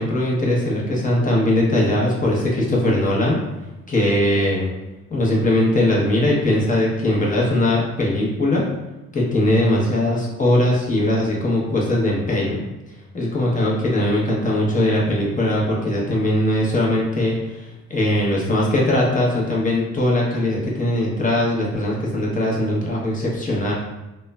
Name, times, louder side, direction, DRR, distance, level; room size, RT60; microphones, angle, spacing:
voice 1, 0.0-3.4 3.9-4.7 5.1-8.6 9.1-12.6 13.1-23.7, left 1 dB, 25° left, -4 dB, 0.8 m, -20 dB
3.0 x 2.1 x 2.2 m, 1.0 s
cardioid pair, 90°, 30 cm